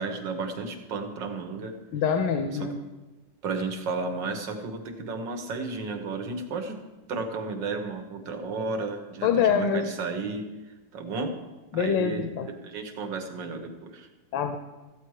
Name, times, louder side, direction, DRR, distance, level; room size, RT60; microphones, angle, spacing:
voice 1, 0.0-1.7 2.6-2.7 3.4-6.8 7.1-10.5 10.9-11.3 11.7-14.1, right 3 dB, 85° right, 5 dB, 1.9 m, -33 dB
voice 2, 1.9-2.8 9.2-9.9 11.7-12.5 14.3-14.6, left 7 dB, 90° left, 7 dB, 1.4 m, -25 dB
14.0 x 8.2 x 4.8 m, 1.2 s
omnidirectional pair, 1.9 m